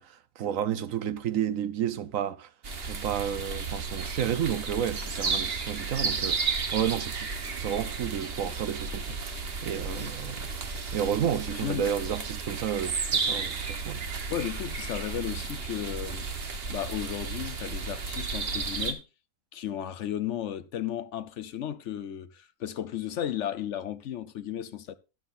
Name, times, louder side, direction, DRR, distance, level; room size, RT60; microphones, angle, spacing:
voice 1, 0.0-2.5 2.8-9.2 9.6-10.5 10.9-14.0, right 9 dB, 65° right, 1.1 m, -31 dB
sound 1, 2.6-18.9, right 4 dB, 40° right, 1.3 m, -33 dB
voice 2, 11.6-11.9 13.3-13.4 14.3-16.3 16.7-19.1 19.5-25.0, left 10 dB, 60° left, 0.9 m, -34 dB
12.5 x 11.5 x 2.6 m
omnidirectional pair, 1.6 m